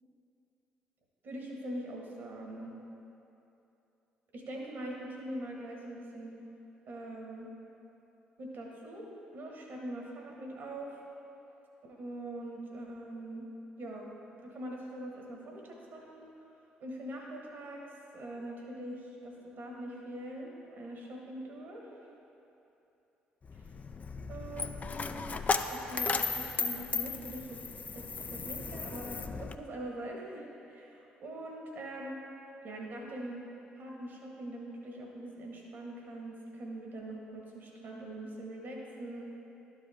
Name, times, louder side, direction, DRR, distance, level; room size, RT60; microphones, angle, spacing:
voice 1, 1.2-2.7 4.3-6.3 6.9-7.5 8.4-9.1 9.3-11.0 11.9-13.5 13.8-14.1 14.4-16.3 16.8-22.0 24.3-25.4 25.7-27.6 27.9-32.2 32.6-33.5 33.8-39.2, right 1 dB, 60° right, -2 dB, 1.4 m, -43 dB
Coin (dropping), 23.4-29.6, left 4 dB, 35° left, 0.4 m, -35 dB
12.0 x 4.8 x 3.6 m, 2.9 s
hypercardioid pair, 50°, 4 cm